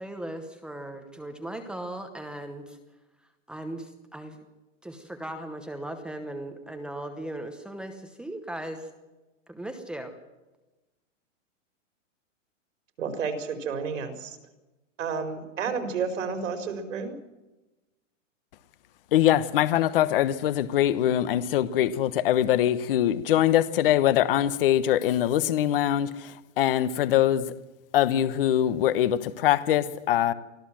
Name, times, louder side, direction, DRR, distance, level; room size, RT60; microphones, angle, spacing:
voice 1, 0.0-2.8 3.5-4.4 4.8-8.9 9.5-10.1, right 1 dB, ahead, 6 dB, 0.9 m, -38 dB
voice 2, 13.0-14.4 15.0-17.1, right 5 dB, 75° right, 7 dB, 4.9 m, -31 dB
voice 3, 19.1-27.5 27.9-30.3, left 12 dB, 45° left, 15 dB, 1.1 m, -23 dB
25.0 x 15.5 x 7.6 m, 1.1 s
hypercardioid pair, 170°, 38 cm